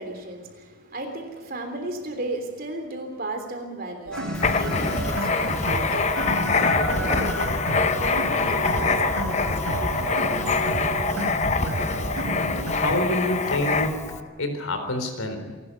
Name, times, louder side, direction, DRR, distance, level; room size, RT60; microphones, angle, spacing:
voice 1, 0.0-10.7, right 1 dB, 45° right, 5 dB, 3.4 m, -35 dB
sound 1, 4.1-14.2, left 1 dB, 5° left, 2.6 m, -36 dB
sound 2, 4.1-12.7, right 1 dB, 85° right, 3.7 m, -31 dB
Writing, 4.3-14.2, left 4 dB, 35° left, 0.8 m, -25 dB
voice 2, 12.7-14.1 14.4-15.6, left 1 dB, 80° left, 6 dB, 4.0 m, -27 dB
27.0 x 12.5 x 8.2 m, 1.3 s
head